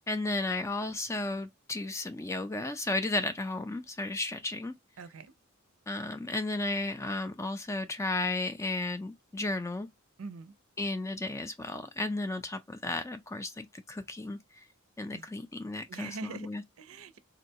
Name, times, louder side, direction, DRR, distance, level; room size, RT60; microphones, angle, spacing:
voice 1, 0.1-4.7 5.9-9.9 10.8-14.4 15.0-16.6, left 2 dB, 15° left, 0.4 m, -34 dB
voice 2, 5.0-5.3 10.2-10.5 15.1-15.3 15.9-16.5 16.8-17.2, right 4 dB, 85° right, 0.5 m, -42 dB
3.8 x 2.2 x 2.7 m
head